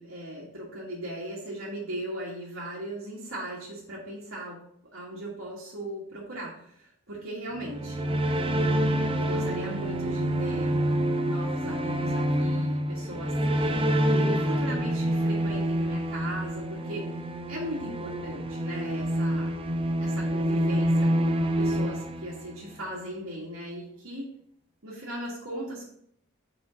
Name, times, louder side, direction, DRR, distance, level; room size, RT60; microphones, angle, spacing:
voice 1, 0.0-4.6 4.9-8.1 9.2-13.3 13.6-13.8 14.1-17.2 17.5-19.5 20.0-24.3 24.8-25.8, right 1 dB, 90° right, -7 dB, 1.9 m, -38 dB
sound 1, 7.6-22.8, right 1 dB, 25° right, 0.6 m, -27 dB
5.3 x 4.9 x 5.1 m, 0.68 s
head